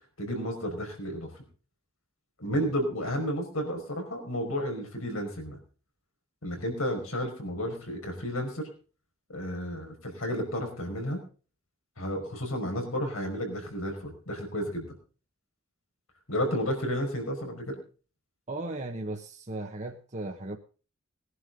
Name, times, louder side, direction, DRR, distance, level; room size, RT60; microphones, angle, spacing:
voice 1, 0.2-1.3 2.4-5.6 6.4-8.7 9.3-11.2 12.0-15.0 16.3-17.8, equal, 85° left, 3 dB, 5.3 m, -32 dB
voice 2, 18.5-20.6, right 2 dB, 35° right, 2 dB, 1.1 m, -36 dB
20.0 x 11.0 x 3.8 m, 0.36 s
head